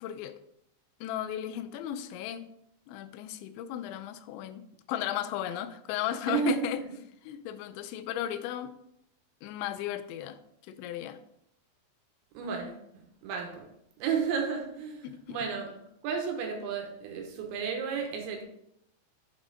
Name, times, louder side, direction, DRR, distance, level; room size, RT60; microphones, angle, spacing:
voice 1, 0.0-0.4 1.0-2.5 2.9-4.6 4.9-6.8 7.3-8.7 9.4-10.4 10.7-11.2 15.0-15.4, left 11 dB, 85° left, 2.7 m, -35 dB
voice 2, 6.3-6.9 12.3-13.7 14.0-15.8 16.0-18.4, right 6 dB, 80° right, 3.2 m, -33 dB
7.2 x 5.3 x 3.9 m
omnidirectional pair, 5.5 m